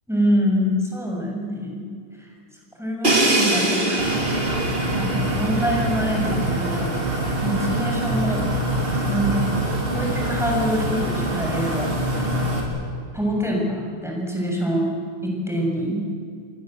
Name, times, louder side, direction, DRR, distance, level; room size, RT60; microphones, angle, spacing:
voice 1, 0.1-1.8 2.2-2.3 2.8-4.0 4.9-7.1 7.4-8.5 9.1-9.5 9.9-12.2 13.1-14.9 15.2-16.0, equal, ahead, -1 dB, 7.1 m, -25 dB
Crash cymbal, 3.0-6.9, right 1 dB, 25° right, 3.5 m, -24 dB
sound 1, 4.0-12.6, right 1 dB, 90° right, 6.1 m, -24 dB
29.0 x 23.0 x 8.1 m, 2.2 s
omnidirectional pair, 2.2 m